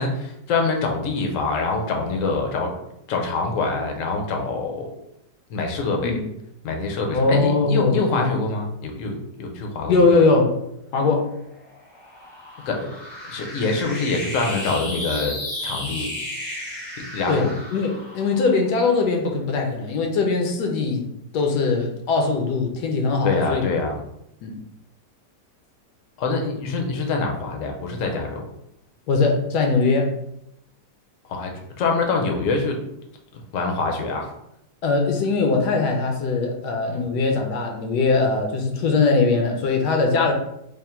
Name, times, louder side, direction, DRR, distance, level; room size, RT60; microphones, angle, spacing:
voice 1, 0.0-2.8 3.1-4.9 5.5-6.2 6.6-10.0 12.7-12.9 13.3-16.1 17.1-17.5 23.2-23.9 26.2-28.5 31.3-31.5 31.8-32.8 33.3-34.3 36.9-37.0, left 3 dB, 65° left, 2 dB, 0.9 m, -25 dB
voice 2, 7.1-8.3 9.9-10.6 10.9-11.3 17.3-21.1 21.3-23.6 24.4-24.6 29.1-30.1 34.8-40.3, left 3 dB, 80° left, 2 dB, 1.2 m, -21 dB
sound 1, 11.2-19.7, left 1 dB, 25° left, 0.5 m, -34 dB
3.4 x 2.1 x 4.2 m, 0.79 s
omnidirectional pair, 1.8 m